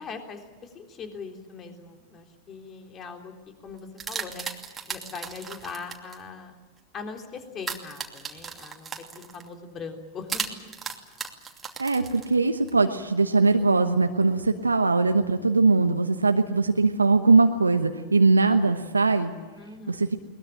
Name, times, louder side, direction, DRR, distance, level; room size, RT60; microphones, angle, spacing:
voice 1, 0.0-4.5 4.9-6.6 6.9-10.7 19.6-20.1, left 5 dB, 30° left, 4 dB, 3.5 m, -41 dB
sound 1, 3.7-6.2 7.6-9.5 10.3-12.7, right 6 dB, 15° right, 2.7 m, -36 dB
voice 2, 11.8-19.3 19.9-20.1, right 3 dB, 85° right, 6 dB, 1.1 m, -21 dB
22.0 x 20.5 x 8.9 m, 1.4 s
figure-of-eight pair, 95°, 0 cm